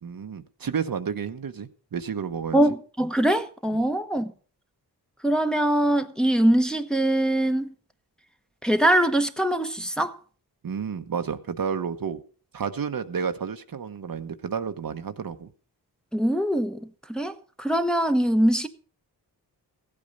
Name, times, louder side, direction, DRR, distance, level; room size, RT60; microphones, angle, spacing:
voice 1, 0.0-2.6 3.7-3.9 10.6-12.2 12.5-15.5, right 6 dB, 55° right, 1.1 m, -31 dB
voice 2, 2.5-4.3 5.2-7.7 8.6-10.2 16.1-16.8 17.1-18.7, right 1 dB, ahead, 1.2 m, -22 dB
15.5 x 8.7 x 5.4 m
cardioid pair, 60°, 41 cm